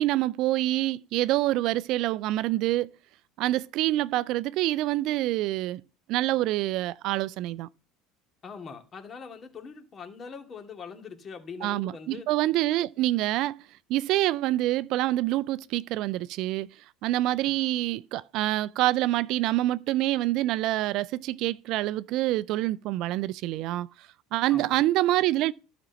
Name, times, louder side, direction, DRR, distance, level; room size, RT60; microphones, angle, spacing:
voice 1, 0.0-2.9 3.4-5.8 6.1-7.7 11.6-13.6 13.9-16.7 17.0-23.9 24.3-25.5, right 16 dB, 60° right, 0.4 m, -26 dB
voice 2, 8.4-12.3 24.5-24.8, left 5 dB, 35° left, 2.5 m, -42 dB
12.0 x 5.2 x 7.0 m
hypercardioid pair, 85°, 0 cm